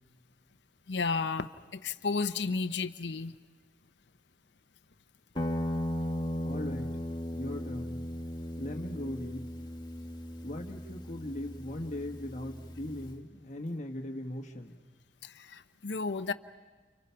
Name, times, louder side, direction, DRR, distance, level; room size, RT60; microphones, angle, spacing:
voice 1, 0.9-3.3 15.2-16.3, left 4 dB, 75° left, 9 dB, 0.7 m, -33 dB
Guitar, 5.3-13.2, left 1 dB, 25° left, 1.5 m, -37 dB
voice 2, 6.4-7.0 7.3-8.0 8.6-9.5 10.4-14.8, left 1 dB, 40° left, 3 dB, 1.5 m, -39 dB
29.5 x 29.5 x 5.8 m, 1.3 s
head